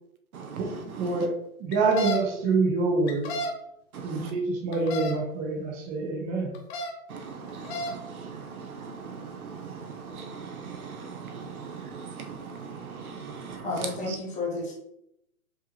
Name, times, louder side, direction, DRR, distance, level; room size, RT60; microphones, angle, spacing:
voice 1, 0.3-1.3 3.9-4.3 7.1-14.2, right 5 dB, 70° right, 1.0 m, -39 dB
voice 2, 1.0-1.3 1.6-3.3 4.0-6.5, right 3 dB, 20° right, 0.8 m, -26 dB
sound 1, 1.7-2.2 3.1-3.5 4.7-5.1 6.5-6.9 7.5-7.9, left 1 dB, 45° left, 1.1 m, -31 dB
voice 3, 13.6-14.7, left 2 dB, 15° left, 1.2 m, -31 dB
5.1 x 3.6 x 2.9 m
hypercardioid pair, 140°, 44 cm